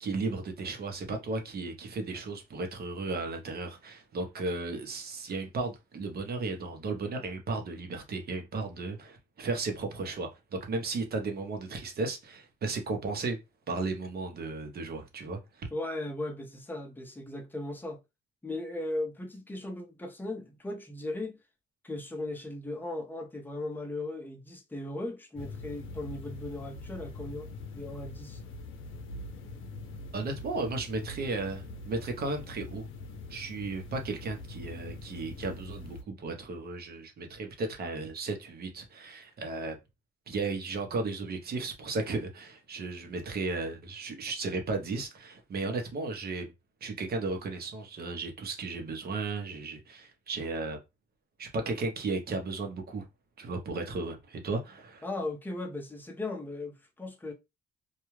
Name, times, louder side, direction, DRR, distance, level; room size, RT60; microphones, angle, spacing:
voice 1, 0.0-13.4 13.7-15.7 30.1-32.8 33.3-39.8 40.3-46.5 46.8-50.8 51.4-53.1 53.4-55.0, right 3 dB, 50° right, 0.9 m, -35 dB
voice 2, 15.7-18.0 18.4-21.4 21.8-28.4 55.0-57.3, left 2 dB, 10° left, 0.7 m, -37 dB
sound 1, 25.4-36.0, left 2 dB, 80° left, 0.6 m, -43 dB
2.3 x 2.2 x 3.1 m
cardioid pair, 90°, 20 cm